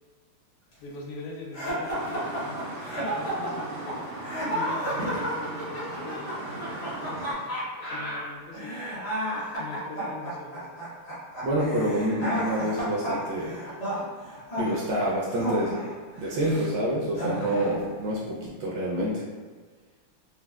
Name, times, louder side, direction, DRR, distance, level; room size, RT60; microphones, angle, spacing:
voice 1, 0.8-4.1 4.5-7.4 7.8-8.7 9.6-10.7, left 2 dB, 85° left, 0 dB, 1.5 m, -42 dB
sound 1, 1.5-16.7 17.1-17.8, equal, 55° left, 0.4 m, -32 dB
sound 2, 1.9-7.3, right 2 dB, 90° right, 1.6 m, -38 dB
voice 2, 11.4-13.7 14.6-15.7 16.2-19.2, right 1 dB, 75° right, -6 dB, 1.1 m, -27 dB
4.2 x 2.1 x 2.3 m, 1.4 s
omnidirectional pair, 2.4 m